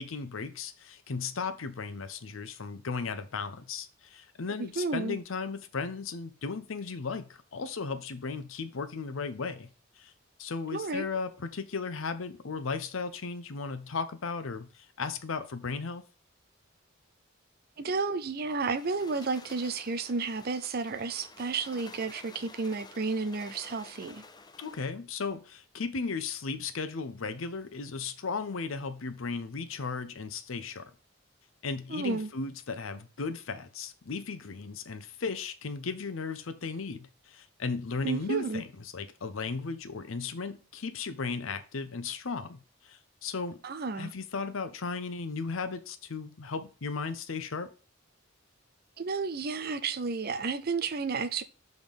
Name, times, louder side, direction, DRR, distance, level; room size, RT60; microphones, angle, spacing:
voice 1, 0.0-9.7 10.0-10.1 10.4-16.0 24.6-30.9 31.6-43.6 43.9-47.7, left 4 dB, 75° left, 0.7 m, -36 dB
voice 2, 4.8-5.2 10.7-11.1 17.8-24.2 31.9-32.3 38.0-38.6 43.6-44.1 49.0-51.4, right 4 dB, 50° right, 0.6 m, -32 dB
sound 1, 18.5-25.0, left 3 dB, 20° left, 0.6 m, -51 dB
7.1 x 4.0 x 5.1 m
head